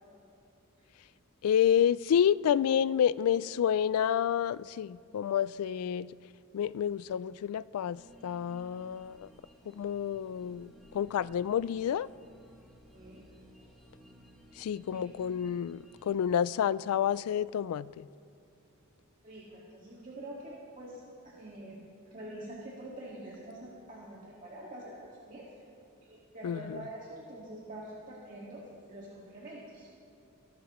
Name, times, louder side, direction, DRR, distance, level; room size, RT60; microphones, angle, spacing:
voice 1, 1.4-6.1 6.5-9.3 9.7-12.1 14.6-18.1 26.4-26.8, left 9 dB, 75° left, 0.3 m, -29 dB
sound 1, 7.9-16.1, equal, ahead, 1.6 m, -57 dB
voice 2, 12.9-13.3 13.6-13.7 14.9-15.0 19.2-25.5 26.0-29.9, right 1 dB, 40° right, 1.9 m, -46 dB
24.5 x 12.0 x 3.1 m
head